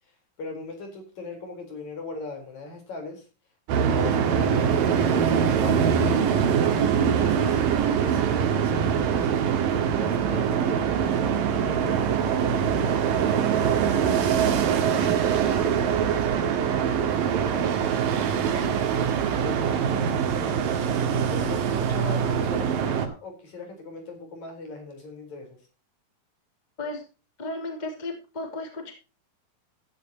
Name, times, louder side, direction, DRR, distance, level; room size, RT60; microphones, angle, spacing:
voice 1, 0.4-3.3 3.7-6.5 7.0-7.4 8.0-14.2 14.7-19.0 19.4-20.8 21.3-25.6, left 3 dB, 55° left, 4 dB, 5.3 m, -39 dB
sound 1, 3.7-23.1, right 7 dB, 75° right, 3.3 m, -23 dB
voice 2, 27.4-28.9, left 2 dB, 10° left, 3 dB, 3.0 m, -34 dB
15.5 x 12.5 x 2.9 m, 0.32 s
omnidirectional pair, 4.0 m